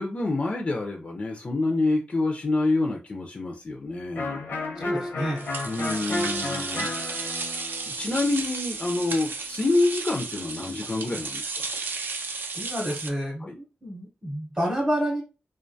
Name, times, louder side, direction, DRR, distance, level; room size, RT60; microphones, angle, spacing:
voice 1, 0.0-4.4 5.6-11.7 13.4-13.5, left 2 dB, 35° left, 1 dB, 0.3 m, -27 dB
Electric guitar, 4.1-9.8, left 2 dB, 85° left, 0.7 m, -33 dB
voice 2, 4.8-5.5 12.5-15.2, equal, 20° right, -2 dB, 0.7 m, -29 dB
sound 1, 5.4-13.1, right 4 dB, 70° right, 0.4 m, -33 dB
2.2 x 2.2 x 2.6 m, 0.30 s
wide cardioid pair, 135°, 4 cm